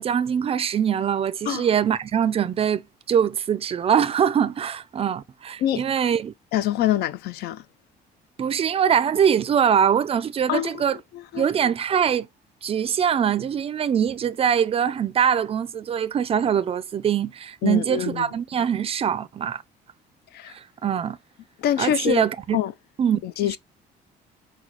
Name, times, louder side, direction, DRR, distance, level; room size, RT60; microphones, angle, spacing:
voice 1, 0.0-6.3 8.4-11.0 11.3-12.3 12.6-19.6 20.5-21.2 21.8-22.6 23.0-23.2, right 8 dB, 35° right, 0.4 m, -23 dB
voice 2, 6.5-7.6 10.5-10.8 11.1-11.5 17.6-18.2 20.3-20.5 21.6-22.3 22.5-22.7 23.2-23.6, left 12 dB, 70° left, 0.4 m, -25 dB
6.1 x 2.3 x 2.9 m
cardioid pair, 110°, 17 cm